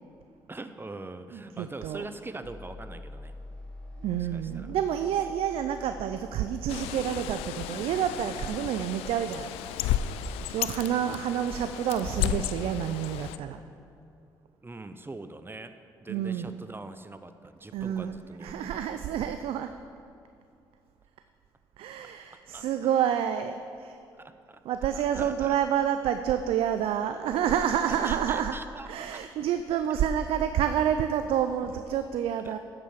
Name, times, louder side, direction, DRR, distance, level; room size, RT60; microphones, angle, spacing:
voice 1, 0.5-3.3 4.1-4.7 14.6-18.8 22.5-22.6 24.2-24.6 24.9-25.6 27.9-29.2 32.4-32.5, right 2 dB, 20° right, 10 dB, 0.7 m, -42 dB
voice 2, 1.6-2.0 4.0-9.5 10.5-13.6 16.1-16.5 17.7-19.7 21.8-24.0 24.7-28.5 28.9-32.6, right 9 dB, 70° right, 9 dB, 0.4 m, -28 dB
sound 1, 2.4-10.5, left 2 dB, 10° left, 1.6 m, -47 dB
Bird, 6.7-13.4, left 11 dB, 80° left, 0.4 m, -33 dB
8.0 x 7.7 x 7.2 m, 2.6 s
hypercardioid pair, 45°, 10 cm